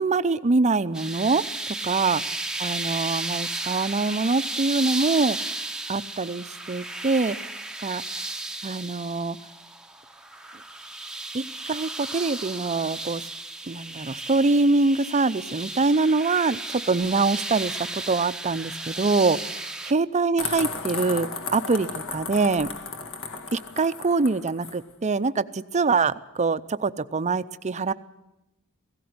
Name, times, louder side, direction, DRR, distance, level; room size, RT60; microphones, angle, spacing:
voice 1, 0.0-1.4 1.8-2.2 2.6-5.5 5.9-7.4 7.8-8.2 8.6-9.4 11.3-13.3 13.7-22.7 23.5-27.9, right 3 dB, 30° right, 13 dB, 0.6 m, -24 dB
sound 1, 0.9-19.9, right 2 dB, 5° right, 0.8 m, -34 dB
sound 2, 20.4-24.8, left 4 dB, 65° left, 2.0 m, -34 dB
17.5 x 16.5 x 9.5 m, 0.92 s
head